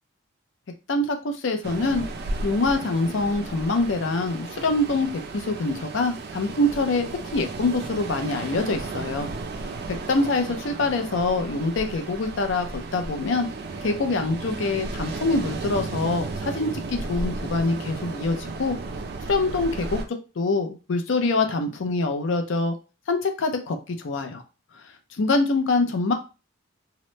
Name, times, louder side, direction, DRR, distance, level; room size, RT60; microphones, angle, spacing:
voice 1, 0.9-2.0 2.4-7.1 7.3-9.3 9.9-13.5 13.8-18.8 19.3-20.0 20.4-22.7 23.1-24.4 25.2-26.1, left 3 dB, 70° left, 6 dB, 0.5 m, -25 dB
Ocean, 1.6-20.0, right 3 dB, 50° right, 0.4 m, -34 dB
2.8 x 2.1 x 3.0 m, 0.31 s
head